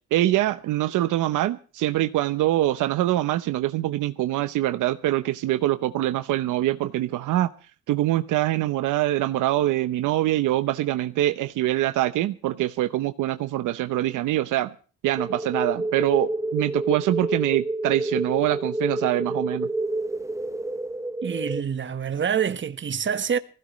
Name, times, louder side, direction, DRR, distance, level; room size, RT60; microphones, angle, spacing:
voice 1, 0.1-7.5 7.9-14.7 15.0-19.7, right 14 dB, 85° right, 0.8 m, -24 dB
sound 1, 15.2-21.6, right 2 dB, 10° right, 0.9 m, -28 dB
voice 2, 21.2-23.4, right 7 dB, 40° right, 1.3 m, -26 dB
20.0 x 16.0 x 3.2 m
cardioid pair, 90°, 30 cm